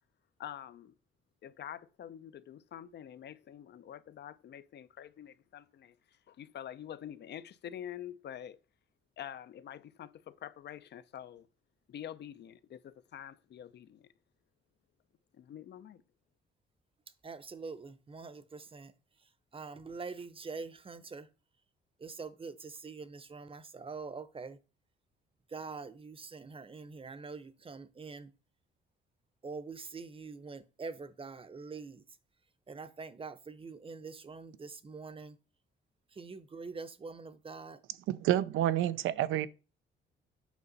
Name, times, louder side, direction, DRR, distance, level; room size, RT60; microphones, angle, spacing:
voice 1, 0.4-0.9 1.4-8.6 9.2-11.5 11.9-14.1 15.3-16.0, left 10 dB, 60° left, 0.6 m, -46 dB
voice 2, 17.2-18.9 19.5-21.3 22.0-24.6 25.5-28.3 29.4-32.0 32.7-35.4 36.2-37.8, right 4 dB, 25° right, 0.8 m, -44 dB
voice 3, 38.1-39.5, right 12 dB, 85° right, 0.5 m, -29 dB
8.2 x 5.3 x 4.0 m
cardioid pair, 90°, 20 cm